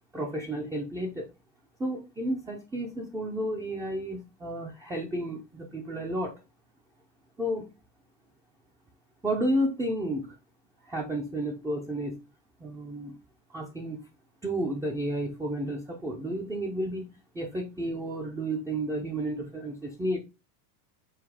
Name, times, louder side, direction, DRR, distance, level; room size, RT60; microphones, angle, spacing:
voice 1, 0.1-1.3 1.8-6.3 7.4-7.6 9.2-10.3 10.8-12.2 12.6-13.2 13.5-14.0 14.4-17.1 17.3-20.2, right 1 dB, 5° right, 0 dB, 0.6 m, -32 dB
7.2 x 2.8 x 4.8 m, 0.28 s
supercardioid pair, 145°, 50 cm